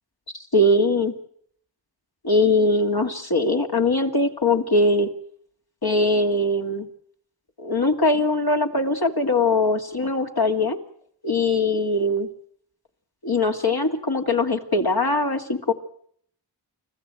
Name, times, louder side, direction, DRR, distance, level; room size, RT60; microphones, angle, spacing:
voice 1, 0.5-1.1 2.2-5.1 5.8-6.9 7.6-10.8 11.2-12.3 13.2-15.7, left 2 dB, 60° left, 3 dB, 2.4 m, -21 dB
29.5 x 14.5 x 8.9 m, 0.65 s
wide cardioid pair, 55°, 43 cm